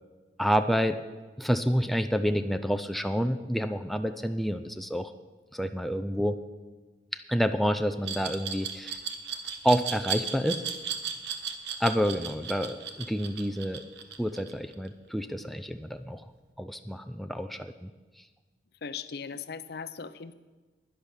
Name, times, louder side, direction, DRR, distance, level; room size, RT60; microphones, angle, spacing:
voice 1, 0.4-1.0 1.4-5.1 5.5-6.4 7.1-9.0 9.6-10.6 11.8-13.8 14.2-16.2 16.6-17.9, equal, ahead, 8 dB, 0.4 m, -28 dB
Glass, 8.0-14.9, right 8 dB, 70° right, 1.2 m, -35 dB
voice 2, 18.8-20.3, left 6 dB, 60° left, 13 dB, 0.6 m, -38 dB
11.0 x 10.5 x 6.3 m, 1.3 s
head